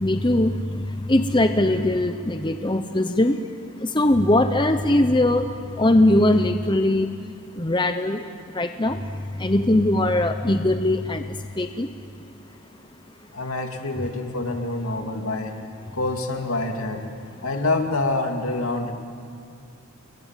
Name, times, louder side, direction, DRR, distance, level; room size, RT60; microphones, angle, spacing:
voice 1, 0.0-3.4 3.8-5.5 5.8-7.1 7.6-8.2 8.5-9.0 9.4-11.2 11.6-11.9, left 1 dB, 20° left, 8 dB, 0.8 m, -20 dB
voice 2, 13.3-15.6 15.9-17.1 17.4-18.9, left 2 dB, 75° left, 4 dB, 2.6 m, -26 dB
29.0 x 22.0 x 9.1 m, 2.4 s
head